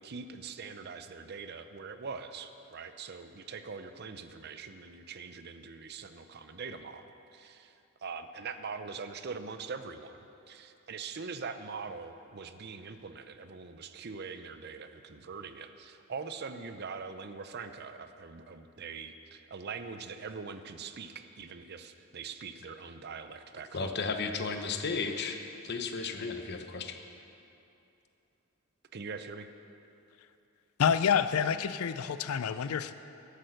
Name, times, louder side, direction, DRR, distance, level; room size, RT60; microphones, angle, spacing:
voice 1, 0.0-7.8 8.0-24.0 28.9-29.5, right 5 dB, 50° right, 10 dB, 0.6 m, -43 dB
voice 2, 23.7-25.4 25.6-27.0, left 4 dB, 50° left, 6 dB, 0.8 m, -34 dB
voice 3, 30.8-32.9, left 7 dB, 80° left, 12 dB, 0.4 m, -28 dB
12.0 x 8.3 x 6.5 m, 2.8 s
head